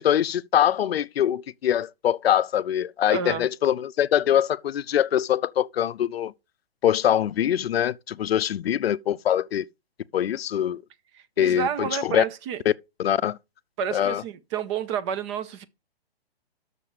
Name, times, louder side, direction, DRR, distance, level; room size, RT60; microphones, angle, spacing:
voice 1, 0.0-6.3 6.8-9.7 10.1-10.8 11.4-12.2 13.0-13.4 13.9-14.2, left 10 dB, 75° left, 0.5 m, -23 dB
voice 2, 3.1-3.5 11.1-12.6 13.8-15.6, right 7 dB, 30° right, 0.7 m, -30 dB
7.0 x 6.7 x 4.8 m
hypercardioid pair, 130°, 31 cm